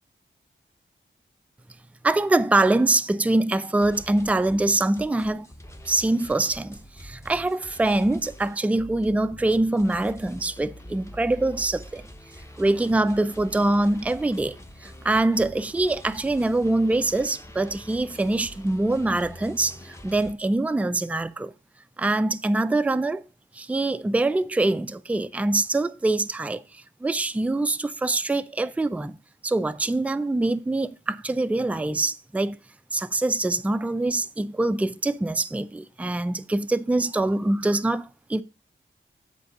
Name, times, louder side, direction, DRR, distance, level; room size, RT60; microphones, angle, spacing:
voice 1, 2.0-5.5 5.9-12.0 12.6-21.5 22.0-23.2 23.5-29.2 29.4-32.6 32.9-38.4, right 2 dB, 5° right, 0.4 m, -24 dB
sound 1, 3.8-20.3, left 1 dB, 15° left, 0.8 m, -45 dB
8.0 x 3.8 x 6.5 m
wide cardioid pair, 115°, 20 cm